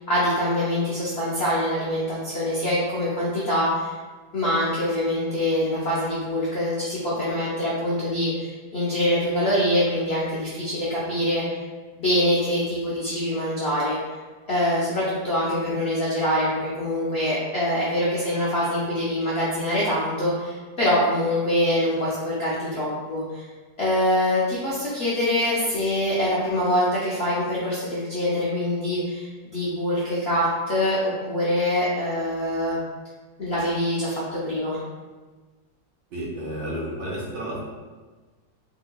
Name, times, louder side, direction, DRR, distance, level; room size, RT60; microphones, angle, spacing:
voice 1, 0.1-3.9 4.3-11.6 11.9-14.0 14.5-23.4 23.8-32.8 33.4-34.8, left 1 dB, 65° left, -8 dB, 0.6 m, -24 dB
voice 2, 36.1-37.6, right 1 dB, 75° right, -5 dB, 1.5 m, -31 dB
3.6 x 2.8 x 2.2 m, 1.3 s
omnidirectional pair, 1.9 m